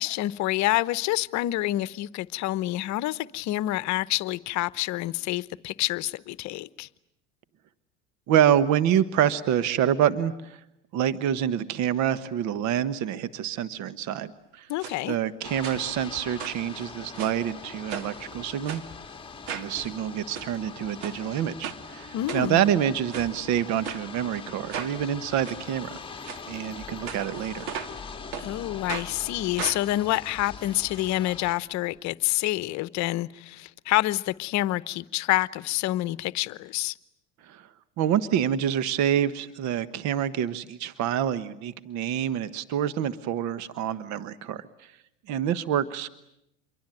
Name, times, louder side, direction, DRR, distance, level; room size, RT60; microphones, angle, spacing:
voice 1, 0.0-6.9 14.7-15.2 22.1-22.6 28.4-36.9, left 16 dB, 50° left, 1.0 m, -27 dB
voice 2, 8.3-10.6 10.9-14.7 15.1-18.8 19.5-26.0 26.5-27.6 37.5-37.6 38.0-44.7 45.3-46.2, right 10 dB, 50° right, 1.3 m, -27 dB
sound 1, 14.8-15.0 15.6-16.1 16.4-17.4 17.9-18.2 18.7-18.9 19.5-19.7 20.2-20.5 21.0-21.2 21.6-21.8 22.3-22.7 23.1-23.3 23.8-24.0 24.7-24.9 25.4-25.6 26.2-26.4 27.1-28.0 28.3-28.5 28.9-29.1 29.6-31.1 31.4-31.5 31.7-31.8, right 8 dB, 65° right, 2.4 m, -37 dB
sound 2, 15.4-31.5, left 5 dB, 15° left, 2.0 m, -42 dB
27.5 x 23.0 x 9.0 m
hypercardioid pair, 95°, 36 cm